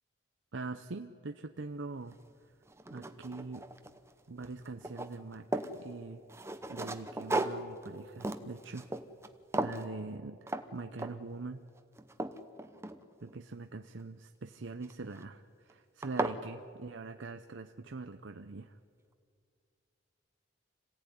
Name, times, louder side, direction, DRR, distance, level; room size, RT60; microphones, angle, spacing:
voice 1, 0.5-2.2 2.9-3.6 4.3-6.2 6.7-8.9 9.5-11.6 13.2-18.8, right 3 dB, 75° right, 8 dB, 0.8 m, -43 dB
sound 1, 2.1-2.2 2.7-4.1 4.4-5.8 6.3-9.3 9.5-9.9 10.5-10.7 11.0-11.4 11.8-13.4 14.8-15.2 15.7-15.8 16.0-16.4, right 2 dB, 15° right, 0.8 m, -36 dB
26.5 x 16.5 x 10.0 m, 2.3 s
head